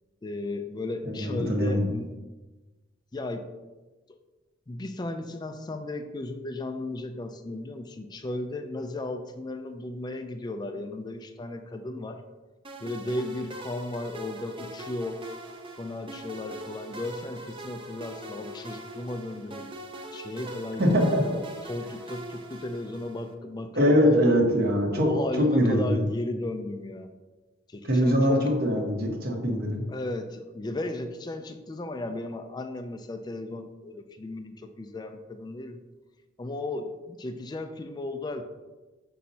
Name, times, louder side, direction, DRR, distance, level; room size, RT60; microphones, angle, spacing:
voice 1, 0.2-2.2 3.1-3.5 4.1-4.2 4.7-12.2 12.8-15.2 15.8-19.7 20.1-24.4 24.9-27.1 27.7-28.6 29.9-35.8 36.4-38.4, left 2 dB, 20° left, 7 dB, 0.4 m, -35 dB
voice 2, 1.0-1.9 20.8-21.2 23.7-25.1 25.4-26.0 27.8-29.8, equal, 55° right, 1 dB, 1.1 m, -22 dB
sound 1, 12.6-23.3, right 1 dB, 25° right, 0.6 m, -42 dB
6.3 x 5.9 x 2.8 m, 1.2 s
head